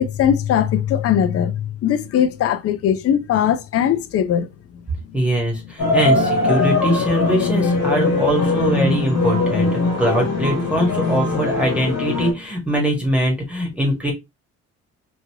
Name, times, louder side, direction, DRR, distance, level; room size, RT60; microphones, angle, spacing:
voice 1, 0.0-4.5, left 9 dB, 50° left, 0.5 m, -20 dB
voice 2, 5.1-14.1, equal, 5° right, 1.2 m, -22 dB
sound 1, 5.8-12.3, left 3 dB, 75° left, 1.6 m, -20 dB
3.1 x 2.6 x 2.7 m
cardioid pair, 90°, 30 cm